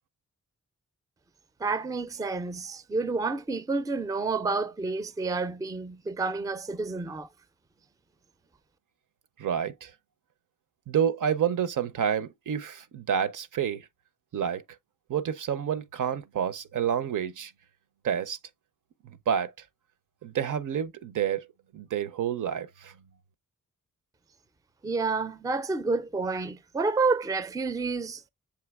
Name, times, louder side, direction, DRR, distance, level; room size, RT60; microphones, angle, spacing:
voice 1, 1.6-7.3 24.8-28.3, right 3 dB, 10° right, 0.4 m, -29 dB
voice 2, 9.4-9.9 10.9-13.9 14.3-14.6 15.1-17.5 18.0-18.4 19.0-19.5 20.2-21.5 21.7-22.9, right 8 dB, 70° right, 0.5 m, -29 dB
6.9 x 2.8 x 2.2 m
cardioid pair, 65°, 32 cm